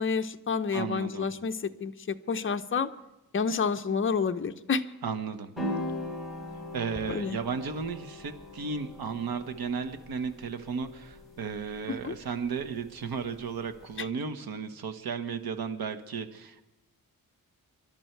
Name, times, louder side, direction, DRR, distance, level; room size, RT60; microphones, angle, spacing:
voice 1, 0.0-2.9 3.3-4.9 7.1-7.4 11.9-12.2 14.0-14.1, left 5 dB, 35° left, 8 dB, 0.7 m, -29 dB
voice 2, 0.7-1.3 5.0-5.5 6.7-16.6, right 5 dB, 90° right, 9 dB, 1.3 m, -34 dB
sound 1, 5.6-14.0, left 1 dB, ahead, 4.0 m, -41 dB
25.5 x 12.0 x 4.6 m, 1.0 s
wide cardioid pair, 160°, 36 cm